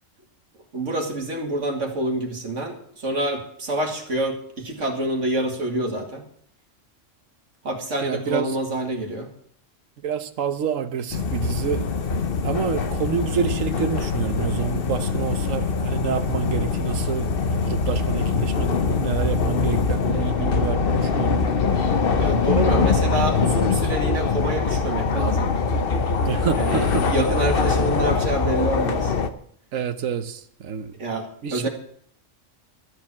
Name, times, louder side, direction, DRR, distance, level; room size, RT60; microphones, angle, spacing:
voice 1, 0.7-6.3 7.6-9.3 22.2-25.5 26.6-29.1 31.0-31.7, right 1 dB, 70° right, 2.4 m, -27 dB
voice 2, 8.0-8.5 10.0-11.8 12.4-21.4 26.3-27.0 29.7-30.9 31.4-31.7, right 7 dB, 90° right, 1.3 m, -28 dB
sound 1, 11.1-29.3, left 4 dB, 50° left, 1.0 m, -23 dB
13.0 x 7.6 x 8.4 m
omnidirectional pair, 1.3 m